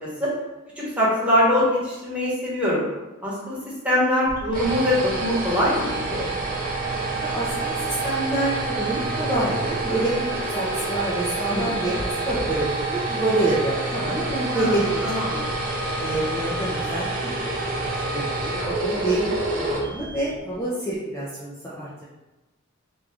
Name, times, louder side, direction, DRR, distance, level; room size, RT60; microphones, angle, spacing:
voice 1, 0.0-0.3 0.8-2.8 3.2-3.6 3.8-6.2 11.5-11.7 14.5-14.8 15.0-15.4, left 1 dB, 5° right, -9 dB, 1.3 m, -23 dB
sound 1, 4.3-20.5, right 2 dB, 45° right, 0.7 m, -28 dB
voice 2, 7.2-10.3 10.5-15.1 16.0-17.1 18.1-22.0, right 1 dB, 15° left, -9 dB, 0.6 m, -27 dB
3.5 x 2.5 x 3.4 m, 1.1 s
head